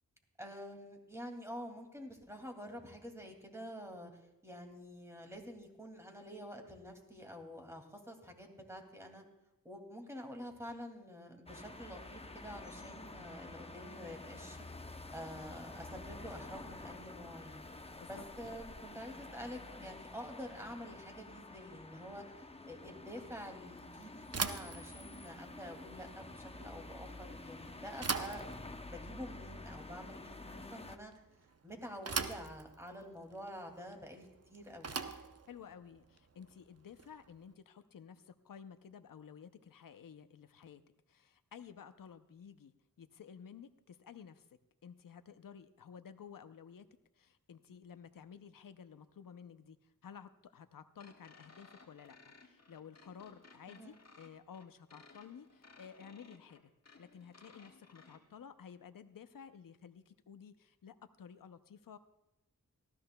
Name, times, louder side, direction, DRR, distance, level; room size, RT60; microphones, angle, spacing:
voice 1, 0.4-9.2 9.6-14.6 15.1-17.7 18.1-31.1 31.6-34.9 53.7-54.0, equal, 10° right, 2 dB, 2.3 m, -48 dB
sound 1, 11.5-31.0, left 2 dB, 15° left, 0.7 m, -49 dB
Bicycle / Thump thud, 24.3-37.4, right 5 dB, 45° right, 0.7 m, -43 dB
voice 2, 35.5-40.8 41.1-44.5 44.8-46.9 47.2-56.7 57.0-62.0, left 7 dB, 70° left, 11 dB, 0.6 m, -53 dB
sound 2, 51.0-58.2, left 3 dB, 50° left, 1.6 m, -60 dB
18.5 x 13.5 x 2.2 m, 0.91 s
cardioid pair, 45°, 35 cm